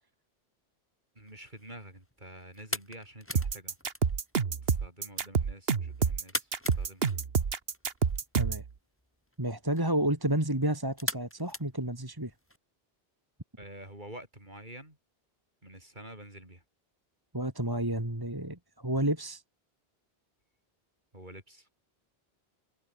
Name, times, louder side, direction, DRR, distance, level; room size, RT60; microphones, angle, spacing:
voice 1, 1.1-3.8 4.6-7.1 13.6-15.0 15.6-16.6 21.1-21.7, right 1 dB, 45° right, 7.6 m, -48 dB
sound 1, 1.2-12.6, equal, 10° left, 4.8 m, -43 dB
sound 2, 3.4-8.7, right 6 dB, 70° right, 1.5 m, -28 dB
voice 2, 9.4-12.3 17.3-19.4, right 1 dB, 20° right, 2.9 m, -30 dB
omnidirectional pair, 1.1 m